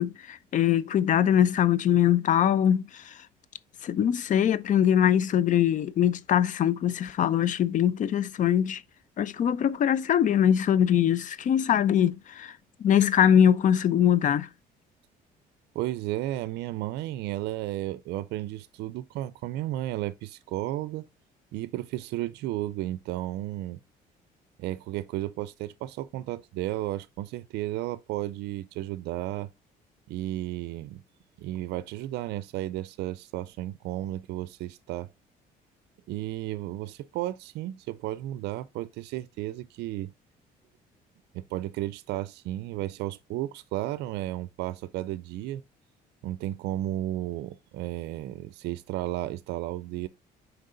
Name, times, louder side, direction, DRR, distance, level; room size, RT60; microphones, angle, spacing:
voice 1, 0.0-3.2 3.8-8.8 9.2-12.5 12.8-14.5, left 9 dB, 50° left, 0.6 m, -22 dB
voice 2, 15.7-21.1 21.5-23.8 24.6-29.5 30.1-31.0 31.4-35.1 36.1-40.1 41.3-45.6 46.2-50.1, right 15 dB, 80° right, 0.4 m, -33 dB
6.5 x 4.6 x 3.8 m
cardioid pair, 110°, 17 cm